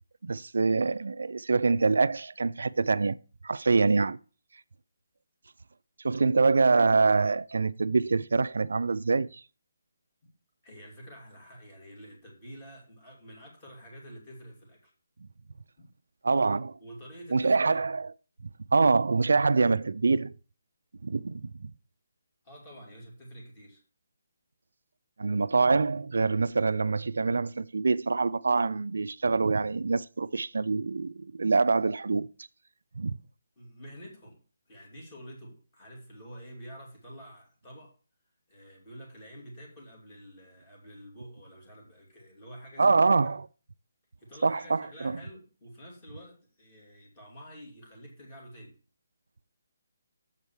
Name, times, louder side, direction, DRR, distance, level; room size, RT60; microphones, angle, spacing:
voice 1, 0.2-3.2 3.4-4.2 6.0-9.4 16.2-16.8 17.3-18.1 18.7-20.3 21.0-21.7 25.2-32.3 33.0-33.2 42.8-43.4 44.4-45.2, right 4 dB, 80° right, 0.3 m, -25 dB
voice 2, 10.6-14.9 15.8-15.9 16.8-17.8 22.4-23.8 33.6-34.4 34.7-37.9 38.5-43.4 44.2-48.8, equal, 20° left, 2.7 m, -48 dB
7.3 x 4.6 x 7.0 m
hypercardioid pair, 175°, 0 cm